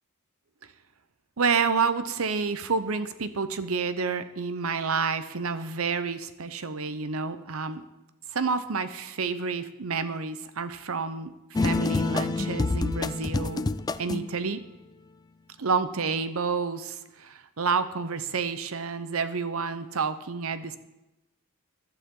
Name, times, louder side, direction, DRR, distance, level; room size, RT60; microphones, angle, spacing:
voice 1, 1.4-7.8 8.3-13.7 14.0-14.6 15.6-20.8, right 5 dB, 70° right, 12 dB, 0.8 m, -29 dB
sound 1, 11.6-14.4, left 3 dB, 20° left, 0.3 m, -27 dB
15.0 x 11.5 x 3.8 m, 0.98 s
head